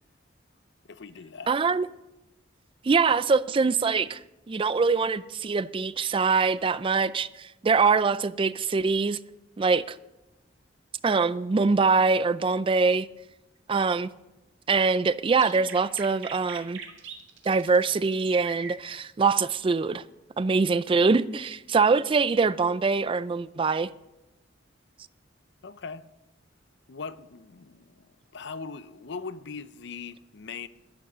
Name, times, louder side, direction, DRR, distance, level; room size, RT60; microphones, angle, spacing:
voice 1, 0.9-1.5 25.6-26.1 26.9-28.1 28.3-30.7, left 5 dB, 65° left, 0.6 m, -40 dB
voice 2, 1.5-1.9 2.8-4.2 4.5-9.2 9.6-10.0 11.0-13.1 13.7-14.1 14.7-16.8 17.5-20.0 20.4-23.9, right 4 dB, 30° right, 0.4 m, -23 dB
sound 1, 15.4-19.0, right 6 dB, 70° right, 2.1 m, -41 dB
11.5 x 11.0 x 6.6 m
head